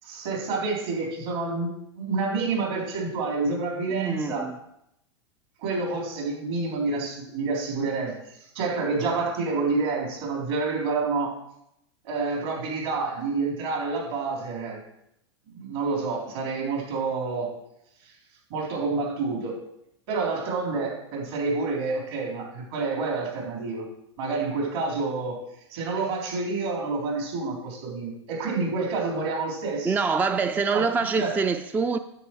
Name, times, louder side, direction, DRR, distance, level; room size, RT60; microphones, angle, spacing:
voice 1, 0.0-1.7 1.9-4.5 5.6-11.3 12.0-14.8 15.5-17.5 18.0-18.1 18.5-19.5 20.1-23.8 24.2-25.4 25.7-29.9 30.7-30.9 31.2-31.3, right 3 dB, 65° right, 3.7 m, -28 dB
voice 2, 3.9-4.6 29.8-32.0, right 5 dB, 10° right, 0.3 m, -25 dB
9.8 x 7.8 x 4.6 m
hypercardioid pair, 110°, 14 cm